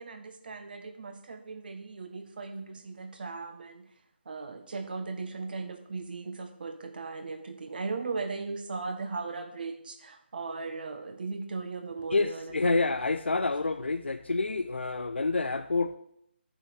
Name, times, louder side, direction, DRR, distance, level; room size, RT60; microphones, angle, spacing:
voice 1, 0.0-3.9 4.2-13.1, right 4 dB, 55° right, 7 dB, 1.6 m, -38 dB
voice 2, 12.1-15.9, left 3 dB, 80° left, 9 dB, 0.7 m, -28 dB
8.9 x 6.4 x 7.9 m, 0.75 s
figure-of-eight pair, 155°, 6 cm